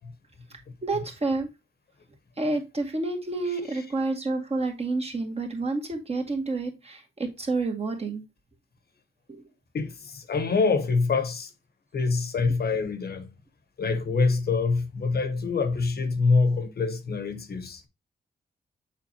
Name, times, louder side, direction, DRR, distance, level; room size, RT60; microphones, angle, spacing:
voice 1, 0.8-1.5 2.4-8.2 9.3-9.4, right 3 dB, 35° right, 2.0 m, -29 dB
voice 2, 9.7-11.5 11.9-13.3 13.8-17.9, left 4 dB, 60° left, 1.1 m, -25 dB
7.3 x 5.2 x 2.8 m
wide cardioid pair, 110°, 18 cm